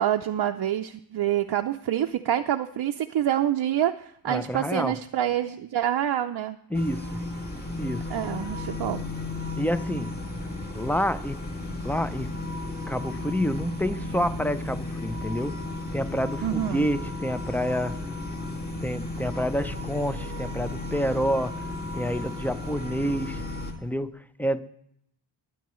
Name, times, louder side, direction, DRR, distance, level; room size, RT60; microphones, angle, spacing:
voice 1, 0.0-6.6 8.1-9.0 16.4-16.9, right 11 dB, 55° right, 0.5 m, -27 dB
voice 2, 4.3-5.0 6.7-7.2 7.8-8.1 9.6-10.1 10.7-11.4 11.8-12.3 12.9-15.6 15.9-18.0 18.8-21.5 21.9-23.4 23.8-24.6, equal, 5° left, 0.4 m, -28 dB
sound 1, 6.7-23.7, left 2 dB, 20° left, 2.0 m, -34 dB
20.0 x 9.4 x 3.1 m
wide cardioid pair, 105°, 49 cm